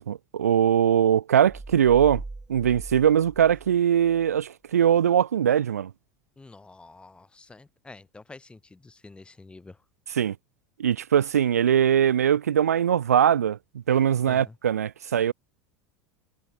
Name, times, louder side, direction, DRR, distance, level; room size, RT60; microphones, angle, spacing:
voice 1, 0.0-2.2 2.5-5.9 10.1-10.3 10.8-13.6 13.9-15.3, right 9 dB, 85° right, 0.4 m, -21 dB
sound 1, 1.5-4.3, right 3 dB, 10° right, 1.1 m, -40 dB
voice 2, 6.4-9.8 14.3-14.6, left 3 dB, 10° left, 3.4 m, -47 dB
hypercardioid pair, 85°, 8 cm